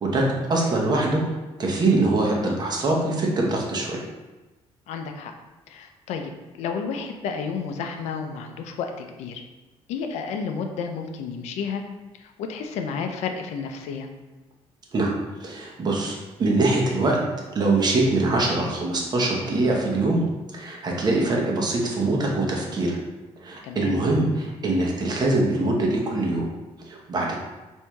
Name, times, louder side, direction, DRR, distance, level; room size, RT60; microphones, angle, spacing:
voice 1, 0.0-1.2 1.6-4.0 14.9-15.1 15.4-17.2 17.5-20.2 20.5-23.0 23.4-26.5 26.9-27.4, right 2 dB, 40° right, -2 dB, 0.8 m, -23 dB
voice 2, 4.9-5.3 5.7-9.4 9.9-11.8 12.2-14.1 23.6-24.0, left 5 dB, 85° left, 5 dB, 0.4 m, -31 dB
4.4 x 2.7 x 2.2 m, 1.1 s
cardioid pair, 105°, 11 cm